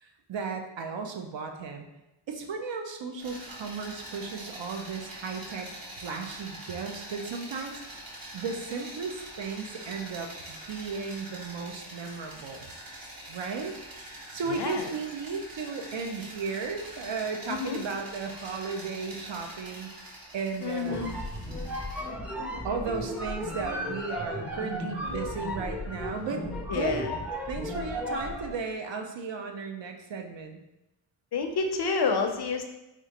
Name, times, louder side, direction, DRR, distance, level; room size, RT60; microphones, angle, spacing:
voice 1, 0.0-1.9 2.3-5.7 6.0-7.8 8.3-12.7 13.3-13.7 14.0-21.2 22.6-26.4 26.7-27.0 27.5-30.6, right 5 dB, 70° right, 4 dB, 0.6 m, -35 dB
sound 1, 3.2-22.0, right 1 dB, 45° right, 0.9 m, -44 dB
voice 2, 14.5-14.9 17.5-17.8 20.6-21.1 26.7-27.1 31.3-32.6, left 4 dB, 55° left, 4 dB, 0.5 m, -29 dB
sound 2, 20.8-28.6, left 1 dB, 5° right, 0.4 m, -35 dB
4.3 x 2.4 x 2.8 m, 0.94 s
wide cardioid pair, 95°, 47 cm